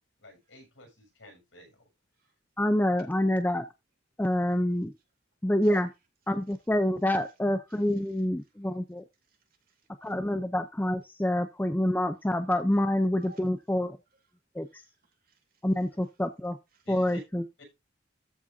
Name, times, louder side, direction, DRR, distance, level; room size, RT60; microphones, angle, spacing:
voice 1, 0.2-1.9 16.8-17.2 17.6-17.7, equal, 75° left, 6.7 m, -51 dB
voice 2, 2.6-3.7 4.2-4.9 5.4-5.9 6.3-9.0 10.0-14.0 14.5-14.8 15.6-16.6 16.9-17.4, left 1 dB, 10° left, 0.5 m, -27 dB
voice 3, 7.7-8.0 9.3-10.1 13.2-13.5 14.6-15.6 16.7-17.2, right 2 dB, 50° right, 2.7 m, -60 dB
14.0 x 6.0 x 2.7 m
head